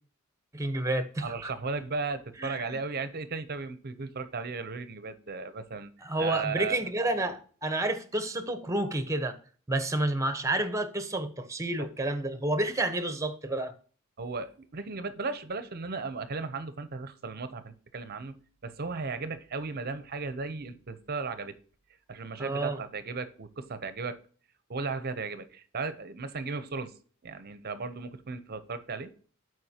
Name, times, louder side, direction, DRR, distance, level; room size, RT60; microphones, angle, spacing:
voice 1, 0.5-1.5 2.4-2.8 6.0-9.4 9.7-13.7 22.4-22.8, right 1 dB, 15° right, 0.9 m, -30 dB
voice 2, 1.2-5.9 6.2-6.8 11.8-11.9 14.2-21.6 22.1-24.2 24.7-26.9 27.2-29.1, right 4 dB, 50° right, 0.7 m, -36 dB
12.5 x 4.7 x 2.8 m
head